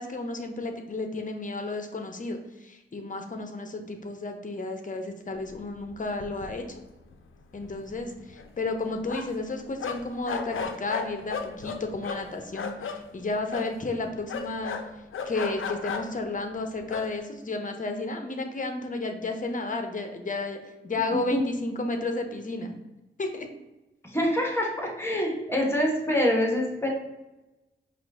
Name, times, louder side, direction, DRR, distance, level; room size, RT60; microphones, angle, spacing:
voice 1, 0.0-6.8 7.5-14.8 15.2-22.7 23.2-23.5, left 2 dB, 40° left, 5 dB, 0.8 m, -32 dB
sound 1, 5.9-6.0 6.2-6.9 7.1-7.2 7.6-9.5 9.8-13.0 13.5-13.7 14.3-16.3 16.8-17.1, left 6 dB, 75° left, 0.5 m, -34 dB
voice 2, 24.1-26.9, left 1 dB, 10° left, -1 dB, 1.3 m, -25 dB
5.0 x 2.5 x 3.5 m, 1.0 s
cardioid pair, 55°, 21 cm